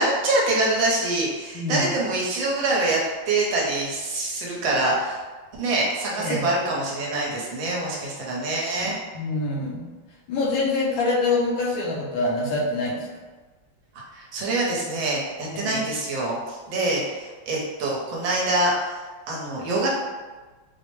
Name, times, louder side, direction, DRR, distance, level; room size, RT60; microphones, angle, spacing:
voice 1, 0.0-3.0 3.3-5.2 5.6-8.9 14.1-19.0 19.3-19.9, right 2 dB, 70° right, -4 dB, 1.4 m, -25 dB
voice 2, 1.5-1.9 6.2-6.5 8.8-8.9 9.1-9.8 10.3-13.1 15.6-15.7, left 2 dB, 75° left, -3 dB, 1.3 m, -25 dB
4.7 x 2.0 x 3.0 m, 1.3 s
omnidirectional pair, 2.3 m